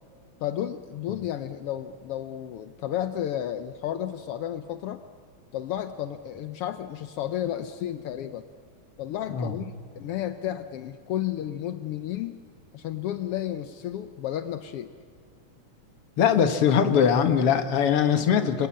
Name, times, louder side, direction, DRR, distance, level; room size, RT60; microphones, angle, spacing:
voice 1, 0.4-5.0 5.5-8.5 9.0-12.4 12.7-14.9, left 11 dB, 85° left, 10 dB, 1.2 m, -32 dB
voice 2, 16.2-18.7, left 7 dB, 55° left, 9 dB, 2.0 m, -21 dB
28.5 x 23.5 x 8.6 m, 2.3 s
omnidirectional pair, 3.6 m